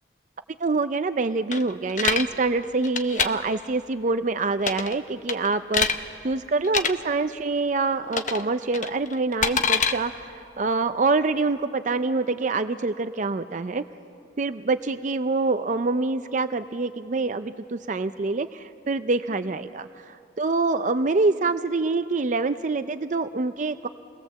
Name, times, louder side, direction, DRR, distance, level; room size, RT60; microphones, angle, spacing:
voice 1, 0.6-13.8 14.4-23.9, right 3 dB, 40° right, 10 dB, 0.5 m, -26 dB
sound 1, 1.5-2.3 2.8-3.3 4.6-5.0 5.3-6.0 6.6-6.9 8.1-8.4 8.7-9.9, left 6 dB, 45° left, 0.9 m, -24 dB
28.5 x 20.0 x 7.5 m, 2.6 s
head